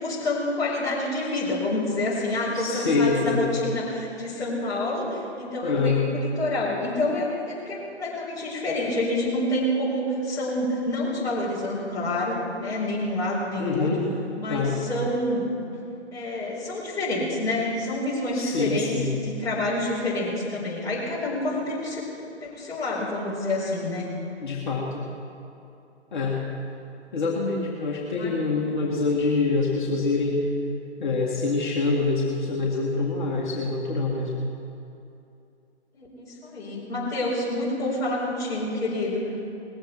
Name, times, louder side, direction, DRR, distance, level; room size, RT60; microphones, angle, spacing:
voice 1, 0.0-13.9 14.4-15.5 16.1-18.9 19.2-22.0 22.4-24.1 28.2-28.4 35.9-39.3, left 1 dB, 10° left, -8 dB, 4.4 m, -28 dB
voice 2, 2.5-3.4 5.6-6.0 13.6-14.0 14.5-14.8 18.3-19.2 24.4-25.1 26.1-26.4 27.1-30.4 31.0-34.4, left 3 dB, 45° left, -4 dB, 2.2 m, -25 dB
19.5 x 15.0 x 4.6 m, 2.7 s
figure-of-eight pair, 130°, 34 cm